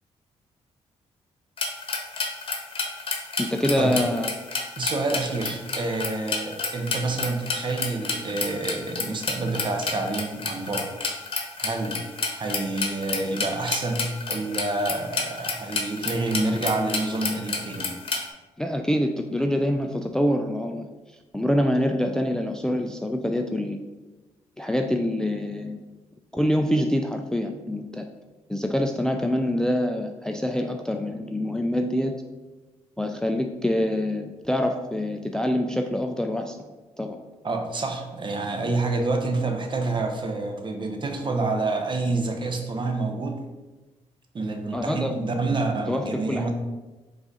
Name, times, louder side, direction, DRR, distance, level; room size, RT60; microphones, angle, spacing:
sound 1, 1.6-18.3, left 4 dB, 45° left, 0.9 m, -30 dB
voice 1, 3.4-4.3 18.6-20.9 21.3-23.8 24.6-25.8 26.3-28.1 28.5-32.2 33.0-36.7 37.0-37.2 44.7-45.1 45.9-46.5, left 1 dB, 5° left, 5 dB, 0.3 m, -25 dB
voice 2, 4.8-10.9 11.6-12.0 12.3-18.0 37.4-43.4 44.3-46.5, right 3 dB, 40° right, 4 dB, 0.8 m, -28 dB
4.7 x 2.5 x 4.0 m, 1.2 s
supercardioid pair, 65°, 12 cm